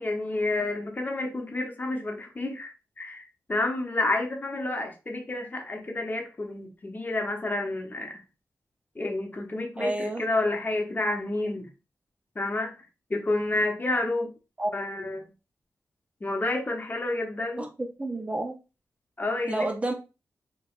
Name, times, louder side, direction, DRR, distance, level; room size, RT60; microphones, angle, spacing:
voice 1, 0.0-8.2 9.0-11.7 12.3-12.7 13.1-14.3 14.7-15.3 16.2-17.7 19.2-19.7, left 2 dB, 30° left, 0.8 m, -29 dB
voice 2, 9.8-10.2 14.6-14.7 17.6-18.6 19.5-19.9, right 2 dB, 20° right, 0.5 m, -30 dB
3.4 x 2.9 x 2.4 m
wide cardioid pair, 80°, 6 cm